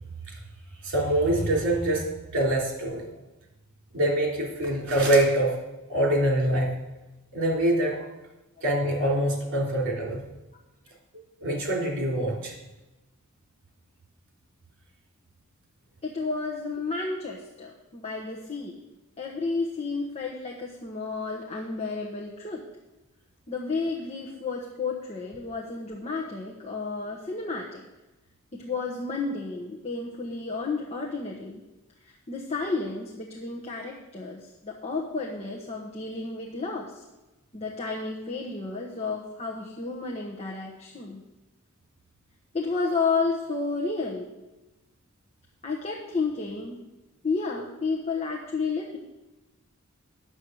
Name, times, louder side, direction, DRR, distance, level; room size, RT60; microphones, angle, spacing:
voice 1, 0.8-2.1 2.3-3.1 3.9-5.5 5.9-6.8 7.3-8.0 8.6-10.2 11.4-12.5, right 1 dB, 60° right, -1 dB, 3.2 m, -24 dB
voice 2, 16.0-18.7 19.2-22.6 23.5-27.8 28.5-31.6 32.3-36.9 37.5-41.2 42.5-44.3 45.6-46.8 47.2-49.0, left 4 dB, 30° left, -2 dB, 1.1 m, -31 dB
9.6 x 7.4 x 6.3 m, 1.0 s
head